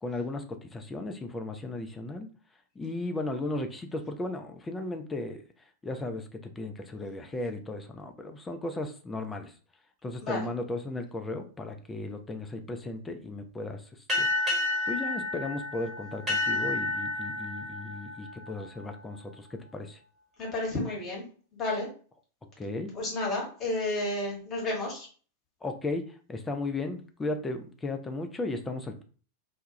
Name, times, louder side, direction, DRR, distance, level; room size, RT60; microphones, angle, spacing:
voice 1, 0.0-2.3 2.8-5.4 5.8-9.5 10.0-14.3 14.9-20.0 22.4-22.9 25.6-29.0, left 2 dB, 15° left, 6 dB, 0.3 m, -35 dB
sound 1, 14.1-19.2, left 2 dB, 15° right, 1.0 m, -31 dB
voice 2, 20.4-21.3 21.5-21.9 22.9-25.1, left 2 dB, 30° left, -3 dB, 1.0 m, -31 dB
2.2 x 2.0 x 2.7 m, 0.40 s
figure-of-eight pair, 90°, 0 cm